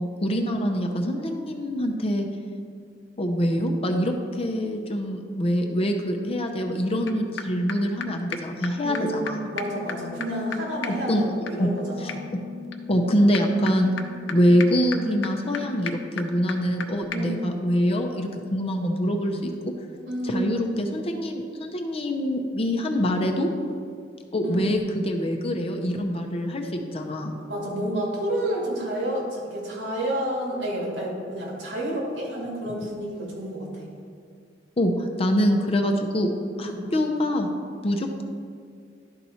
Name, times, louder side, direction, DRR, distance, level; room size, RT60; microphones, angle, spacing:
voice 1, 0.0-2.3 3.2-9.4 11.1-11.3 11.6-11.7 12.0-12.1 12.9-13.9 14.3-19.5 20.3-23.5 24.3-27.4 34.8-36.3 36.6-37.5 37.8-38.2, equal, 30° left, 3 dB, 0.6 m, -24 dB
sound 1, 7.1-7.2 7.4-7.5 7.7-7.8 8.0-8.1 8.3-8.4 8.6-8.7 8.9-9.0 9.3-9.4 9.6-16.8 17.1-17.2, left 6 dB, 75° left, 0.6 m, -36 dB
voice 2, 8.8-12.2 17.1-17.4 20.1-20.6 24.4-24.7 27.4-33.9 36.6-36.8, right 1 dB, 70° right, -3 dB, 2.2 m, -30 dB
11.5 x 4.2 x 4.3 m, 2.2 s
head